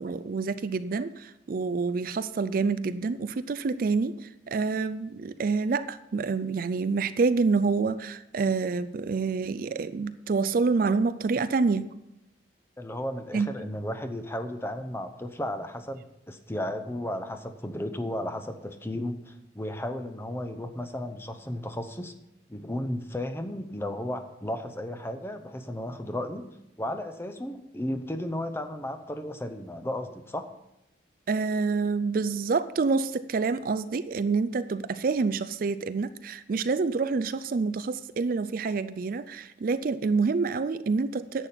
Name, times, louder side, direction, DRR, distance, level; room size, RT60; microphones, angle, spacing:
voice 1, 0.0-11.9 13.3-13.5 31.3-41.5, right 4 dB, 50° right, 14 dB, 0.4 m, -27 dB
voice 2, 12.8-22.1 22.5-26.5 26.8-30.5, left 1 dB, 15° left, 8 dB, 0.7 m, -34 dB
11.0 x 8.4 x 5.8 m, 0.88 s
head